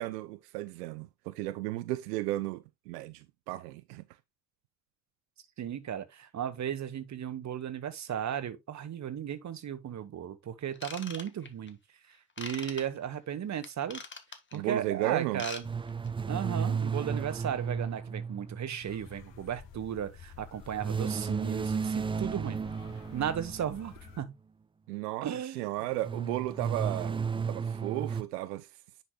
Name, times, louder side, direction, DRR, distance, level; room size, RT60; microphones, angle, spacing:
voice 1, 0.0-4.0 14.5-15.4 24.9-25.3 25.5-28.7, right 17 dB, 75° right, 0.7 m, -34 dB
voice 2, 5.6-11.8 12.1-14.0 14.5-15.6 16.3-22.6 23.1-24.3 25.2-25.7, right 9 dB, 35° right, 1.2 m, -35 dB
Ratchet pawl / Tools, 10.7-11.7 12.4-12.8 13.6-14.6 15.2-15.6 15.9-16.1 16.6-16.7, left 4 dB, 25° left, 1.6 m, -41 dB
sound 1, 15.6-19.2 20.8-23.9 26.0-28.2, right 5 dB, 10° right, 0.5 m, -33 dB
sound 2, 18.8-24.2, left 7 dB, 60° left, 1.7 m, -51 dB
9.9 x 5.6 x 2.3 m
hypercardioid pair, 60°, 47 cm